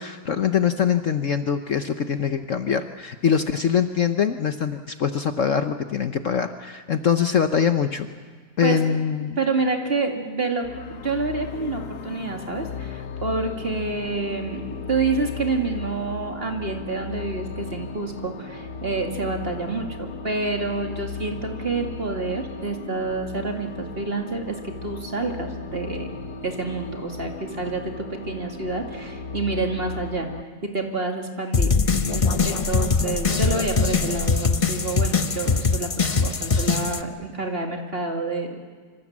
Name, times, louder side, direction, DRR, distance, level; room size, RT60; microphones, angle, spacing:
voice 1, 0.0-8.1 8.6-9.4, left 7 dB, 55° left, 8 dB, 1.1 m, -23 dB
voice 2, 8.6-9.0 9.4-26.1 26.4-30.3 30.7-31.7 32.1-38.6, right 3 dB, 35° right, 2 dB, 2.7 m, -28 dB
sound 1, 10.6-30.4, left 5 dB, 70° left, 1.5 m, -36 dB
sound 2, 31.5-37.0, left 4 dB, 35° left, 0.5 m, -22 dB
26.0 x 25.5 x 7.4 m, 1.5 s
omnidirectional pair, 1.8 m